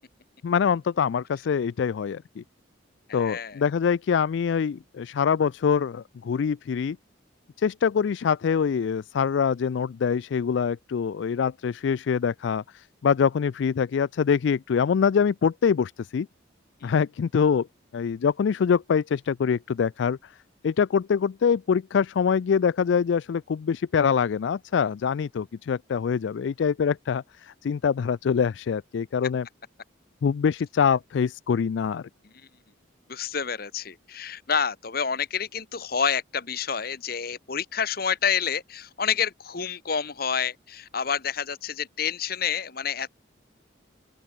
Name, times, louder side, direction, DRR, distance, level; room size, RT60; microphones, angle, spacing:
voice 1, 0.4-2.4 3.1-7.0 7.6-16.3 16.8-17.7 17.9-20.2 20.6-29.5 30.2-32.0, left 6 dB, 65° left, 0.3 m, -24 dB
voice 2, 3.1-3.6 16.8-16.9 33.1-43.1, left 7 dB, 50° left, 1.2 m, -28 dB
open air
head